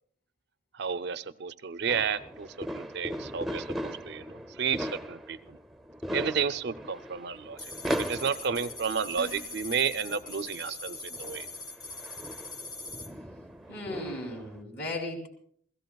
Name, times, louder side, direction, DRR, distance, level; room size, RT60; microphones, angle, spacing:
voice 1, 0.7-5.6 6.1-7.7 8.0-11.5, right 6 dB, 55° right, 13 dB, 0.5 m, -32 dB
sound 1, 1.9-14.6, equal, ahead, 0.6 m, -39 dB
sound 2, 7.6-13.1, left 3 dB, 20° left, 1.0 m, -42 dB
sound 3, 9.2-9.7, left 2 dB, 80° left, 0.8 m, -44 dB
voice 2, 13.7-15.3, left 1 dB, 55° left, 2 dB, 3.0 m, -36 dB
27.5 x 17.0 x 2.3 m, 0.62 s
head